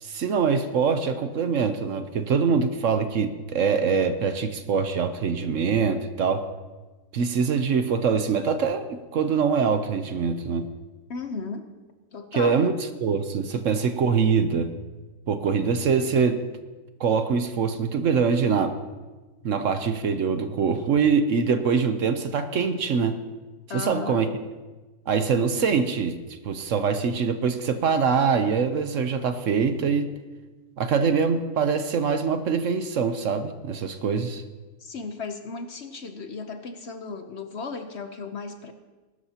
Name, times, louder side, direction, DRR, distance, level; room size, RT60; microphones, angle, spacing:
voice 1, 0.0-6.4 7.1-10.7 12.3-12.7 13.0-14.7 15.3-16.4 17.0-18.7 19.4-23.2 23.7-24.3 25.1-26.2 26.4-30.1 30.8-34.4, right 5 dB, 60° right, 9 dB, 1.1 m, -24 dB
voice 2, 11.1-11.7 12.1-12.6 23.7-24.2 34.8-38.7, left 4 dB, 55° left, 7 dB, 1.0 m, -35 dB
21.0 x 12.5 x 2.9 m, 1.2 s
omnidirectional pair, 1.6 m